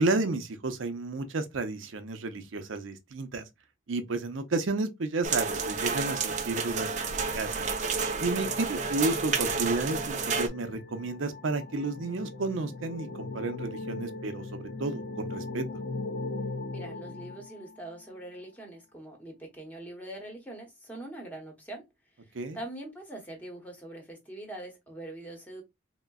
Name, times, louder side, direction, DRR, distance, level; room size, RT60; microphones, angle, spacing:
voice 1, 0.0-3.4 3.9-7.7 8.2-15.7 22.3-22.6, right 3 dB, 80° right, 0.6 m, -32 dB
sound 1, 5.2-10.5, right 4 dB, 35° right, 0.4 m, -30 dB
sound 2, 7.6-18.1, left 3 dB, 45° left, 0.4 m, -40 dB
voice 2, 16.7-21.8 22.5-25.6, right 1 dB, 10° left, 0.9 m, -43 dB
3.7 x 2.1 x 2.2 m
head